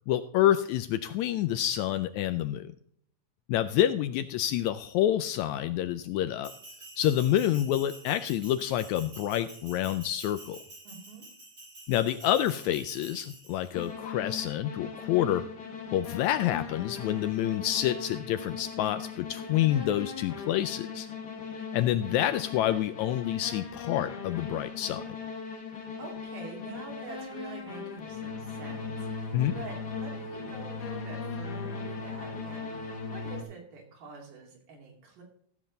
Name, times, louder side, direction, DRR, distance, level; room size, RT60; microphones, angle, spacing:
voice 1, 0.1-2.7 3.5-6.5 7.0-10.6 11.9-15.4 15.9-21.1 21.6-25.0 29.3-29.5, left 12 dB, 80° left, 12 dB, 1.7 m, -28 dB
Bell, 6.4-13.9, right 2 dB, 35° right, 5.0 m, -48 dB
voice 2, 10.8-11.3 25.7-35.2, right 4 dB, 85° right, 0 dB, 4.3 m, -46 dB
sound 1, 13.7-33.4, left 5 dB, 45° left, 1.3 m, -39 dB
14.5 x 7.4 x 3.9 m, 0.65 s
omnidirectional pair, 3.6 m